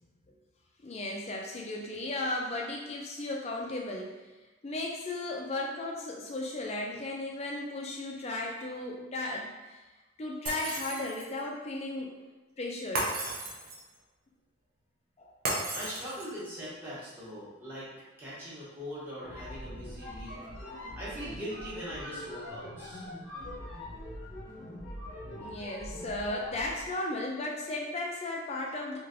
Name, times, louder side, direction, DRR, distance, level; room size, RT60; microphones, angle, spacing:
voice 1, 0.8-4.1 4.6-9.8 10.2-12.2 12.6-13.1 15.2-15.3 25.3-29.0, left 2 dB, 30° left, -1 dB, 0.4 m, -35 dB
Shatter, 10.5-11.4 13.0-13.9 15.5-16.5, right 2 dB, 45° right, 0.5 m, -34 dB
voice 2, 15.7-17.9 18.2-20.3 20.9-23.1, equal, 10° right, -10 dB, 0.9 m, -41 dB
sound 1, 19.1-26.9, left 1 dB, 70° left, 0.7 m, -42 dB
3.2 x 2.5 x 2.5 m, 1.2 s
head